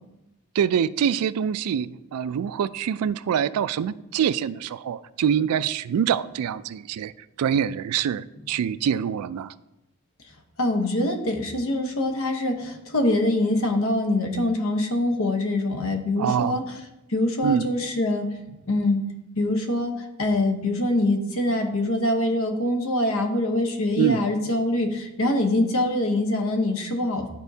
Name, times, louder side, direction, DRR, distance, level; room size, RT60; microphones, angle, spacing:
voice 1, 0.6-7.1 7.4-9.5 16.2-16.6 17.4-17.6 24.0-24.3, right 8 dB, 90° right, 17 dB, 0.3 m, -25 dB
voice 2, 10.6-16.8 17.1-18.3 18.7-19.0 19.4-19.9 20.2-27.3, left 1 dB, 70° left, 4 dB, 1.0 m, -24 dB
11.5 x 4.4 x 2.7 m, 0.91 s
head